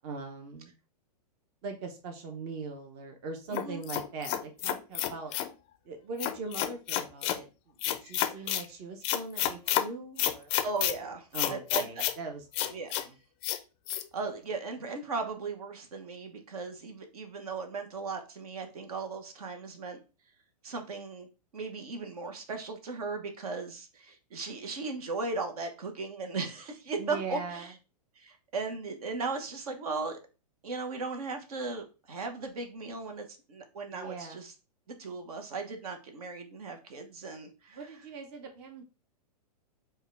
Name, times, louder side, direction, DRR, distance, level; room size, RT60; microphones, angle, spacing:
voice 1, 0.0-0.7 1.6-5.4 5.8-10.5 11.3-12.7 13.0-13.1 27.0-27.7 33.9-34.4 37.7-38.8, right 4 dB, 40° right, 4 dB, 0.8 m, -41 dB
sound 1, 3.5-5.5 6.2-7.4 7.8-8.6 9.0-9.8 10.2-10.9 11.3-12.2 12.5-13.0 13.4-13.6 13.9-14.0, left 12 dB, 30° left, 0.4 m, -30 dB
voice 2, 3.5-3.8 8.3-8.5 10.6-12.0 12.7-12.9 13.9-20.0 20.6-21.3 21.5-27.7 28.2-30.2 30.6-34.5 35.0-37.9, right 4 dB, 65° right, 6 dB, 1.0 m, -37 dB
5.4 x 2.3 x 3.3 m, 0.32 s
hypercardioid pair, 110°, 20 cm